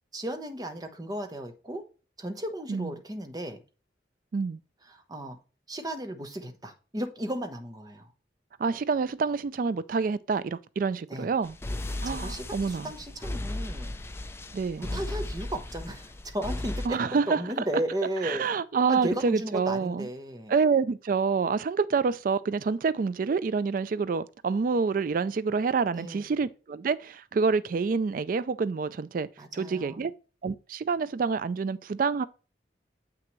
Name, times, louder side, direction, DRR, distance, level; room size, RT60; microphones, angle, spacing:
voice 1, 0.1-1.9 2.2-3.6 4.9-5.4 5.7-8.1 11.1-11.3 12.0-14.0 14.8-18.5 18.9-20.5 25.9-26.3 29.4-30.1, right 1 dB, 20° right, 0.9 m, -35 dB
voice 2, 8.6-11.6 12.0-12.9 14.5-15.0 16.9-17.4 18.2-20.1 20.5-29.3 29.5-30.1 30.4-32.2, right 5 dB, 50° right, 0.3 m, -27 dB
sound 1, 11.4-16.9, left 1 dB, 15° left, 0.5 m, -36 dB
7.7 x 6.0 x 3.1 m
head